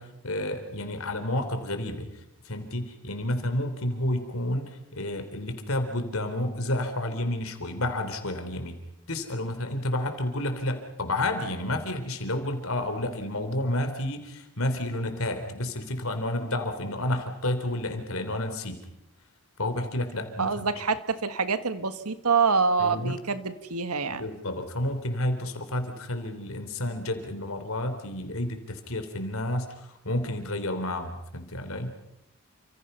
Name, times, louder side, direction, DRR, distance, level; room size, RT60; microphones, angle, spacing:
voice 1, 0.0-2.1 2.4-8.8 9.1-18.8 19.6-20.7 22.8-23.2 24.1-31.9, left 1 dB, 70° left, 7 dB, 3.7 m, -30 dB
voice 2, 20.4-24.2, right 5 dB, 90° right, 10 dB, 1.7 m, -26 dB
30.0 x 26.5 x 5.7 m, 0.88 s
head